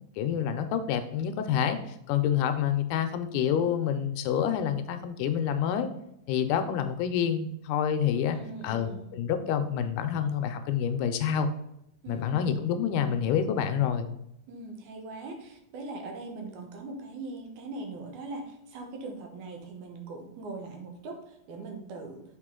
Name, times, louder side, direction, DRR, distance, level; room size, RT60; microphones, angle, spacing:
voice 1, 0.2-1.8 2.1-5.9 6.3-8.4 8.6-11.5 12.1-14.1, left 8 dB, 80° left, 8 dB, 2.0 m, -27 dB
voice 2, 8.3-9.1 12.0-12.6 14.5-22.2, right 3 dB, 70° right, 2 dB, 2.2 m, -41 dB
6.7 x 4.7 x 3.7 m, 0.78 s
omnidirectional pair, 3.8 m